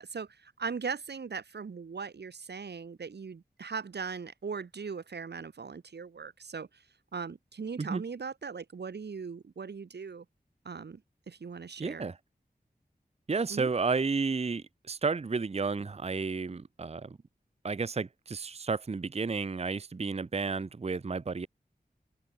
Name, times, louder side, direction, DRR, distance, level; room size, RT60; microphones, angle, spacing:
voice 1, 0.0-6.8 7.1-10.2 10.6-12.1 13.5-13.7, right 5 dB, 85° right, 1.1 m, -39 dB
voice 2, 11.8-12.2 13.3-17.2 17.6-21.5, right 4 dB, 40° right, 0.6 m, -32 dB
open air
cardioid pair, 40°, 17 cm